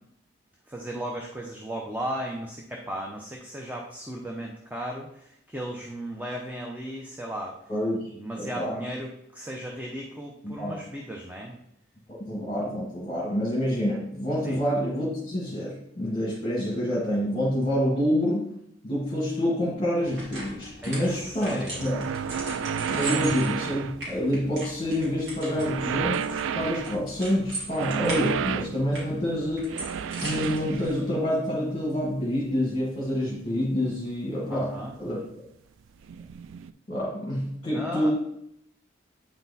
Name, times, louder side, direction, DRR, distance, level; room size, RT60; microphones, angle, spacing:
voice 1, 0.7-7.6 8.1-11.6 14.4-14.6 20.8-21.8 23.1-23.3 34.5-34.9 37.7-38.1, right 1 dB, 10° right, -1 dB, 0.7 m, -36 dB
voice 2, 7.7-8.8 10.4-10.8 12.1-18.5 18.8-22.1 22.9-29.8 30.2-35.2 36.9-38.1, equal, 30° left, -6 dB, 1.8 m, -27 dB
sound 1, 20.0-30.9, right 2 dB, 60° right, 3.0 m, -40 dB
sound 2, 21.7-24.4 25.5-27.1 27.7-28.8 29.7-31.2 32.5-32.6 34.4-34.5 36.0-36.7, right 7 dB, 80° right, 0.3 m, -31 dB
8.9 x 4.4 x 4.1 m, 0.75 s
head